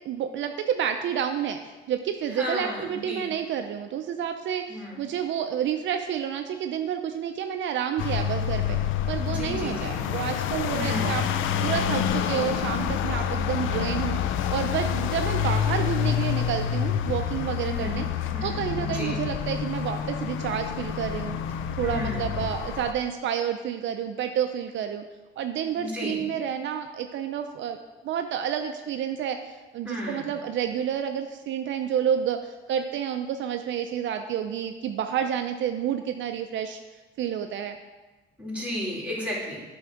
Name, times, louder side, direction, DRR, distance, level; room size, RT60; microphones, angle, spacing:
voice 1, 0.1-1.6 1.9-8.8 9.1-11.2 11.6-14.2 14.5-18.1 18.4-21.4 21.8-25.0 25.4-27.8 28.0-29.4 29.7-36.8 37.2-37.8, right 9 dB, 70° right, 7 dB, 0.5 m, -29 dB
voice 2, 2.4-3.3 4.7-5.0 9.2-10.0 10.7-11.2 17.6-18.0 18.3-19.2 21.8-22.3 25.7-26.2 29.8-30.3 38.4-39.6, left 1 dB, 5° right, -4 dB, 2.6 m, -33 dB
sound 1, 8.0-22.9, left 9 dB, 80° left, 0.4 m, -28 dB
7.6 x 3.6 x 5.8 m, 1.2 s
cardioid pair, 90°, 20 cm